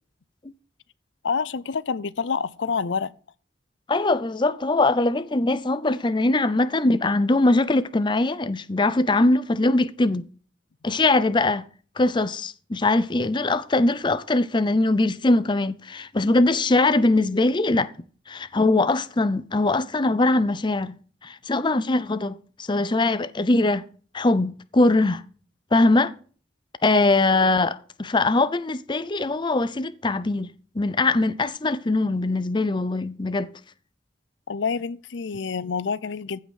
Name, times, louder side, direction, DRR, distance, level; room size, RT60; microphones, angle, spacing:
voice 1, 1.2-3.1 26.9-27.0 34.5-36.4, left 5 dB, 85° left, 0.6 m, -27 dB
voice 2, 3.9-10.3 10.8-11.6 12.0-17.9 18.3-20.9 21.2-23.9 24.1-25.2 25.7-26.1 26.8-30.5 30.7-33.5, left 2 dB, 25° left, 0.6 m, -22 dB
15.0 x 5.7 x 6.4 m
head